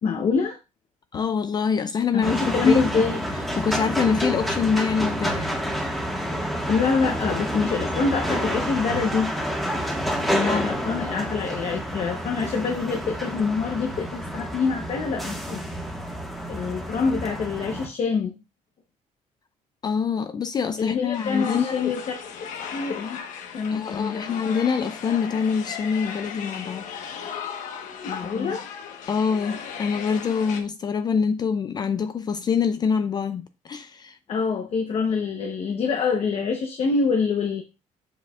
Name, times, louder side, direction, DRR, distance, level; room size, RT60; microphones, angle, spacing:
voice 1, 0.0-0.6 2.1-3.3 6.7-9.3 10.4-15.6 16.5-18.4 20.8-22.2 22.7-23.2 23.5-24.3 28.0-28.7 34.3-37.6, left 5 dB, 50° left, 0.9 m, -25 dB
voice 2, 1.1-2.8 3.3-5.5 10.3-10.8 19.8-21.9 23.7-26.9 28.2-28.6 29.1-34.2, left 6 dB, 35° left, 0.4 m, -25 dB
sound 1, 2.2-17.9, equal, ahead, 1.5 m, -29 dB
sound 2, 21.1-30.6, left 7 dB, 85° left, 1.2 m, -36 dB
7.3 x 6.2 x 2.4 m
cardioid pair, 125°, 13 cm